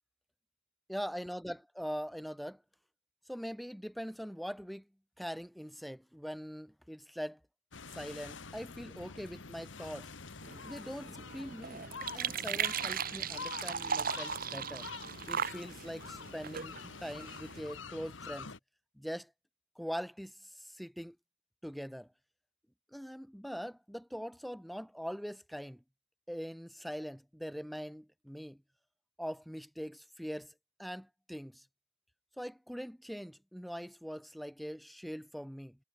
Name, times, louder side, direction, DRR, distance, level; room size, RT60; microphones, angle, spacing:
voice 1, 0.9-2.6 3.3-4.8 5.2-7.4 7.9-10.1 10.6-11.8 12.1-14.9 15.3-16.7 17.0-18.5 19.0-19.3 19.8-21.2 21.6-22.1 22.9-25.8 26.3-28.6 29.2-30.5 30.8-31.7 32.4-35.8, equal, ahead, 0.6 m, -42 dB
sound 1, 7.7-18.6, left 4 dB, 75° left, 1.5 m, -46 dB
sound 2, 10.4-17.6, right 7 dB, 45° right, 1.2 m, -38 dB
head